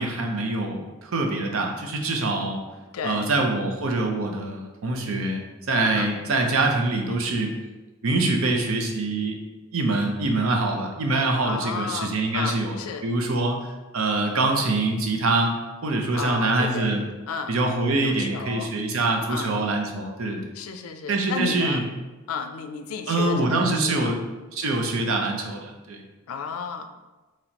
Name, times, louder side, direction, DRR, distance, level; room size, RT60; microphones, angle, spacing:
voice 1, 0.0-2.6 3.0-7.5 8.0-9.4 9.7-12.8 13.0-13.6 13.9-15.5 15.8-17.0 17.5-20.4 21.1-21.8 23.1-24.2 24.5-26.0, right 2 dB, 75° right, 2 dB, 0.6 m, -24 dB
voice 2, 2.9-3.3 5.8-6.1 11.4-13.1 16.1-16.9 17.3-17.6 18.0-18.7 19.3-19.7 20.5-21.9 22.3-24.1 26.3-26.9, left 5 dB, 80° left, 7 dB, 0.4 m, -33 dB
4.2 x 3.1 x 2.8 m, 1.2 s
head